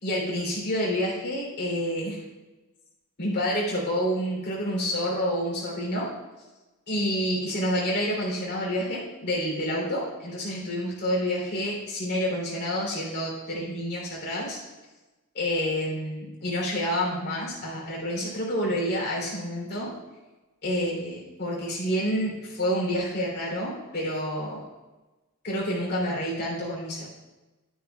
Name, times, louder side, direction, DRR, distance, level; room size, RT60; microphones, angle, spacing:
voice 1, 0.0-2.2 3.2-6.1 6.9-14.6 15.3-19.9 20.6-24.7 25.4-27.1, equal, 50° left, -4 dB, 3.2 m, -28 dB
11.5 x 9.1 x 2.3 m, 1.1 s
head